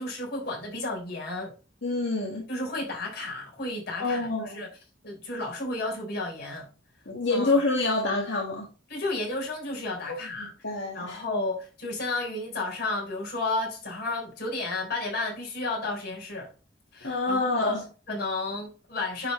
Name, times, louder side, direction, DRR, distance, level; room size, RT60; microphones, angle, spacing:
voice 1, 0.0-1.5 2.5-4.7 5.0-6.7 7.3-7.5 8.9-10.5 10.9-16.5 16.9-19.3, left 2 dB, 60° left, 3.7 m, -32 dB
voice 2, 1.8-2.5 4.0-4.6 7.1-8.6 10.1-11.2 17.0-17.8, left 2 dB, 80° left, 1.6 m, -27 dB
9.8 x 4.3 x 3.1 m
head